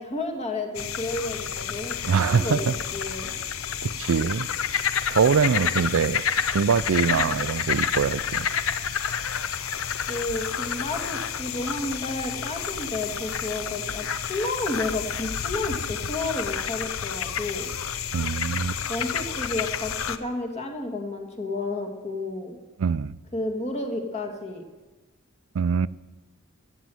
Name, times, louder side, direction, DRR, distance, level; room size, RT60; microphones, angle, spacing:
voice 1, 0.0-3.3 7.1-7.4 10.1-17.7 18.9-22.6 23.3-24.6, left 2 dB, 30° left, 1.9 m, -31 dB
sound 1, 0.7-20.2, left 7 dB, 85° left, 0.7 m, -29 dB
voice 2, 2.1-2.7 3.8-4.5 5.1-6.2 6.5-8.5 18.1-18.8 22.8-23.1 25.5-25.9, right 6 dB, 75° right, 0.4 m, -23 dB
15.5 x 9.2 x 7.8 m
head